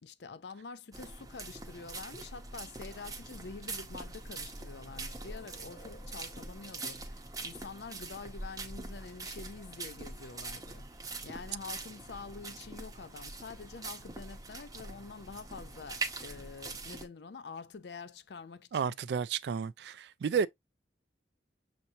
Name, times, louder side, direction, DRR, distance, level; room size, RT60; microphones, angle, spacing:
voice 1, 0.0-10.9 11.2-19.0 20.3-20.5, left 4 dB, 75° left, 0.5 m, -47 dB
sound 1, 0.9-17.1, right 3 dB, 20° right, 0.8 m, -43 dB
sound 2, 2.8-10.4 11.5-11.6 12.0-12.1, equal, 40° left, 0.9 m, -52 dB
voice 2, 18.7-20.5, right 6 dB, 70° right, 0.3 m, -31 dB
6.7 x 2.9 x 2.7 m
head